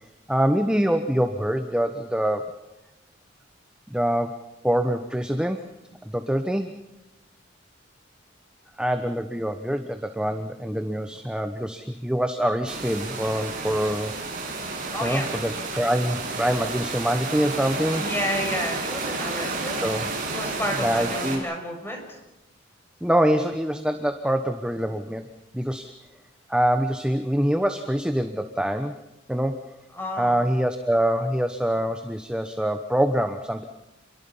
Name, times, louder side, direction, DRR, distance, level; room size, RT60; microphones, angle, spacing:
voice 1, 0.3-2.5 3.9-5.7 6.0-6.8 8.8-14.2 14.5-14.6 15.0-18.1 19.8-20.1 20.8-21.4 23.0-25.3 25.5-25.9 26.5-29.0 29.3-29.6 30.2-33.6, equal, 5° right, 6 dB, 1.0 m, -25 dB
sound 1, 12.7-21.4, right 3 dB, 45° right, 7.1 m, -31 dB
voice 2, 14.9-15.3 17.9-19.8 20.3-22.2 29.9-30.3, left 1 dB, 10° left, 1 dB, 6.6 m, -31 dB
29.0 x 22.5 x 5.6 m, 0.98 s
head